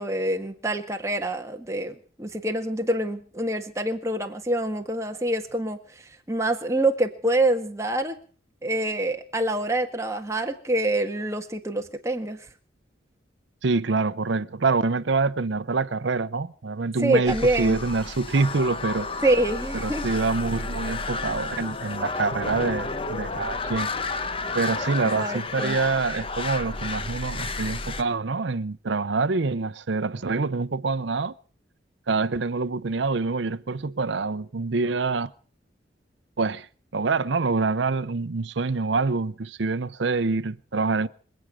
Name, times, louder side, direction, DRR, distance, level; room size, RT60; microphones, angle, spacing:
voice 1, 0.0-8.2 8.6-12.5 17.0-17.8 19.2-20.0 25.2-25.8, right 1 dB, 15° right, 1.6 m, -26 dB
voice 2, 13.6-19.1 19.7-23.9 24.5-31.3 32.1-35.3 36.4-36.7 36.9-41.1, right 4 dB, 70° right, 0.7 m, -26 dB
sound 1, 17.3-28.0, left 3 dB, 30° left, 0.8 m, -31 dB
26.0 x 8.8 x 6.2 m
head